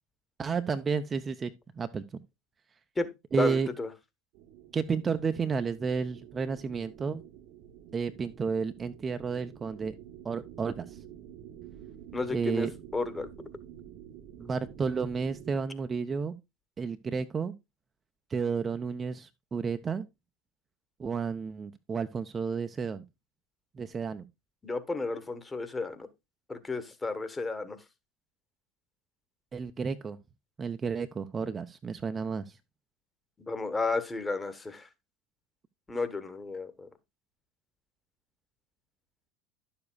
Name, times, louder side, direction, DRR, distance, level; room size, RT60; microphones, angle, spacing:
voice 1, 0.4-2.2 3.3-3.7 4.7-7.2 7.9-9.9 10.2-11.0 12.3-12.7 14.4-16.4 16.8-17.5 18.3-20.0 21.0-23.0 23.7-24.2 29.5-30.2 30.6-32.6, right 5 dB, 25° right, 0.7 m, -32 dB
voice 2, 3.4-3.9 12.1-12.7 12.9-13.3 24.6-26.1 26.5-27.8 33.4-34.9 35.9-36.9, left 3 dB, 15° left, 1.4 m, -32 dB
sound 1, 4.3-15.6, right 10 dB, 55° right, 1.0 m, -49 dB
11.5 x 7.1 x 2.4 m
figure-of-eight pair, 75°, 0 cm